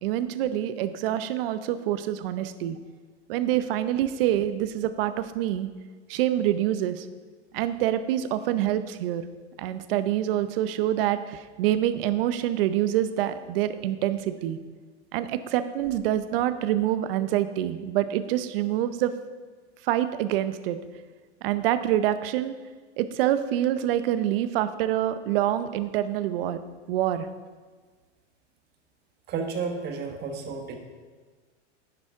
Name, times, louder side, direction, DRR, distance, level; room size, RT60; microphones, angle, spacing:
voice 1, 0.0-2.8 3.3-5.7 6.1-7.1 7.5-9.3 9.6-14.6 15.1-19.1 19.8-20.8 21.4-22.6 23.0-26.6 26.9-27.3, right 12 dB, 55° right, 12 dB, 0.7 m, -26 dB
voice 2, 29.3-30.8, right 5 dB, 30° right, 4 dB, 1.3 m, -32 dB
10.0 x 10.0 x 3.6 m, 1.4 s
hypercardioid pair, 130°, 35 cm